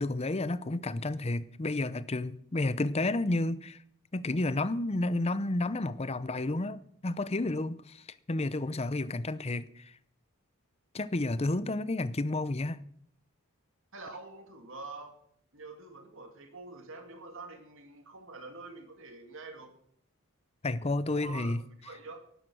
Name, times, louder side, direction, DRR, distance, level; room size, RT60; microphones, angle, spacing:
voice 1, 0.0-3.8 4.1-9.9 10.9-12.8 20.6-21.6, left 2 dB, 30° left, 0.7 m, -31 dB
voice 2, 13.9-15.2 15.5-19.7 21.1-21.5 21.8-22.3, right 3 dB, 60° right, 2.5 m, -46 dB
16.0 x 11.5 x 6.3 m
head